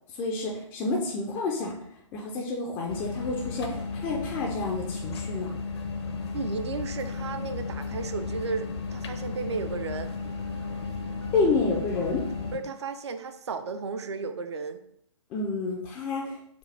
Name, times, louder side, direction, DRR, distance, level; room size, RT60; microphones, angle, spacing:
voice 1, 0.1-1.8 2.1-5.5 11.3-12.2 15.3-16.4, left 3 dB, 15° left, -1 dB, 0.3 m, -29 dB
sound 1, 2.9-12.6, left 4 dB, 55° left, 0.6 m, -34 dB
voice 2, 6.3-10.1 12.5-14.8, right 4 dB, 55° right, 9 dB, 0.4 m, -34 dB
4.8 x 2.2 x 3.3 m, 0.73 s
figure-of-eight pair, 130°, 17 cm